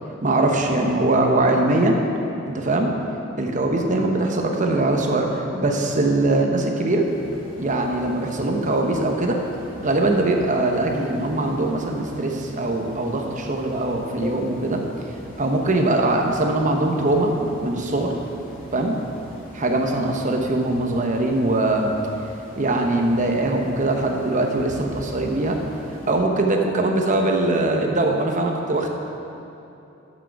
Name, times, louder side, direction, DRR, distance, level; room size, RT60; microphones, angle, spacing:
voice 1, 0.2-2.0 2.4-3.0 3.4-7.1 7.6-9.4 9.8-14.8 15.4-18.1 18.7-18.9 19.5-21.9 22.6-25.6 26.1-28.9, right 2 dB, 40° right, 2 dB, 1.0 m, -21 dB
sound 1, 7.0-26.2, left 1 dB, 45° left, 2.2 m, -41 dB
12.0 x 6.4 x 4.7 m, 2.8 s
head